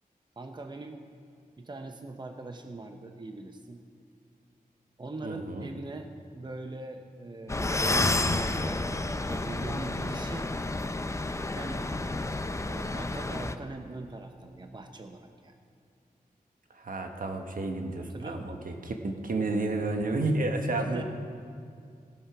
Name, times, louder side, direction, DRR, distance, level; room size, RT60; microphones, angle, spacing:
voice 1, 0.4-1.0 1.6-3.8 5.0-10.5 11.6-11.9 12.6-15.6 18.0-18.6 20.8-21.0, right 2 dB, 30° right, 5 dB, 0.8 m, -41 dB
voice 2, 5.2-5.7 16.7-21.0, right 2 dB, 65° right, 4 dB, 1.4 m, -31 dB
sound 1, 7.5-13.5, left 2 dB, 20° left, 0.6 m, -30 dB
16.0 x 12.0 x 4.9 m, 2.4 s
wide cardioid pair, 80°, 15 cm